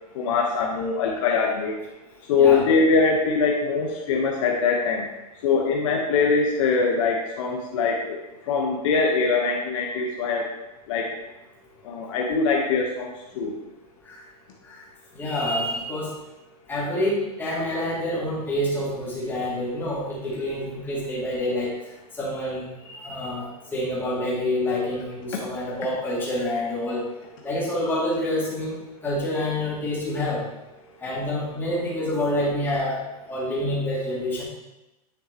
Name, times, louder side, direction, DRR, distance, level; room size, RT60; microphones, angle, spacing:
voice 1, 0.1-1.8 2.3-5.1 5.4-8.2 8.4-10.5 10.9-11.1 11.8-13.6, left 4 dB, 55° left, -1 dB, 1.2 m, -22 dB
voice 2, 15.2-16.1 16.7-21.7 22.2-27.0 27.4-30.4 31.0-33.0 33.3-34.4, left 1 dB, 10° left, -7 dB, 2.4 m, -27 dB
9.6 x 5.8 x 3.0 m, 0.98 s
hypercardioid pair, 150°, 20 cm